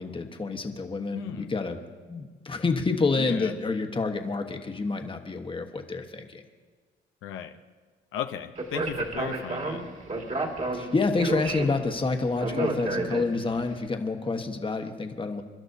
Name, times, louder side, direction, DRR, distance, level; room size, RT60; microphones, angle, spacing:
voice 1, 0.0-1.8 2.1-6.4 10.7-15.4, left 3 dB, 25° left, 5 dB, 1.3 m, -28 dB
voice 2, 1.1-1.5 3.1-3.5 7.2-7.5 8.1-9.8, left 10 dB, 85° left, 6 dB, 0.7 m, -36 dB
Speech, 8.6-13.6, right 2 dB, 35° right, 2.1 m, -31 dB
29.0 x 12.0 x 2.7 m, 1.5 s
cardioid pair, 90°, 20 cm